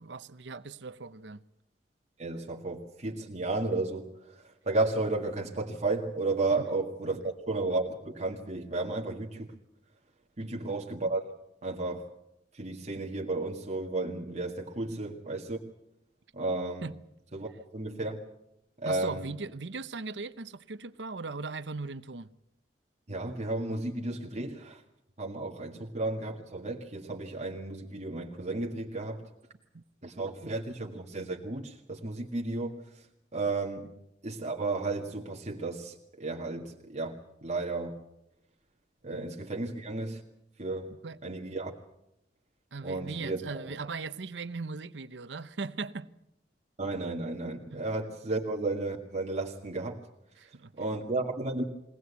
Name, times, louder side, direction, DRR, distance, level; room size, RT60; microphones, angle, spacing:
voice 1, 0.0-1.4 6.6-6.7 10.4-10.5 14.9-15.0 16.8-16.9 18.8-22.3 29.7-29.8 39.1-39.2 41.0-41.2 42.7-46.1 47.7-47.8 50.4-50.9, right 4 dB, 85° right, 0.9 m, -39 dB
voice 2, 2.2-9.5 10.4-11.3 11.6-12.1 12.5-15.6 16.3-16.9 17.3-18.2 18.8-19.2 23.1-24.8 25.2-29.2 30.0-33.1 33.3-33.9 34.2-38.0 39.0-40.2 40.6-40.9 41.2-41.7 42.8-43.8 46.8-50.0 50.8-51.6, right 2 dB, 40° right, 1.9 m, -33 dB
22.5 x 18.5 x 8.3 m
head